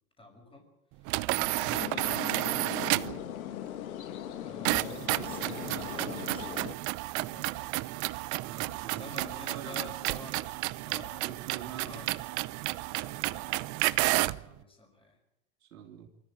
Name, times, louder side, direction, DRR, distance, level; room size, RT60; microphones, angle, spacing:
voice 1, 0.2-0.7 1.0-3.1 4.4-6.6 7.1-8.1 8.9-10.4 10.8-11.3 11.6-12.1 12.9-13.9 14.2-15.2, left 2 dB, 15° left, 3 dB, 5.6 m, -49 dB
sound 1, 1.1-3.2 4.6-14.4, right 21 dB, 45° right, 0.7 m, -31 dB
sound 2, 1.7-6.7, left 11 dB, 80° left, 1.7 m, -39 dB
voice 2, 8.4-10.0 11.2-12.1 15.6-16.1, right 9 dB, 80° right, 0 dB, 3.5 m, -45 dB
24.0 x 14.0 x 9.0 m, 0.87 s
hypercardioid pair, 105°, 42 cm